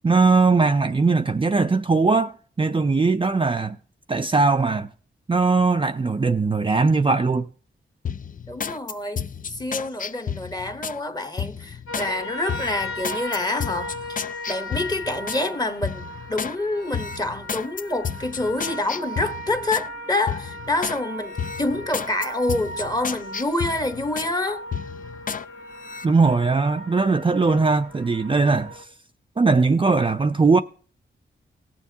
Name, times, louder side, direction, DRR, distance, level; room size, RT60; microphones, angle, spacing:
voice 1, 0.0-3.8 4.1-4.9 5.3-7.5 26.0-28.9 29.4-30.6, right 4 dB, 25° right, 0.4 m, -20 dB
sound 1, 8.0-11.0 11.4-12.1 12.5-15.4 15.8-16.6 16.9-19.9 20.3-21.0 21.4-24.3 24.7-25.4 25.8-26.1, left 7 dB, 45° left, 0.5 m, -32 dB
voice 2, 8.5-24.7, left 2 dB, 20° left, 1.1 m, -27 dB
sound 2, 11.9-28.8, left 1 dB, 85° left, 2.0 m, -37 dB
18.5 x 7.1 x 2.8 m
cardioid pair, 75°, 20 cm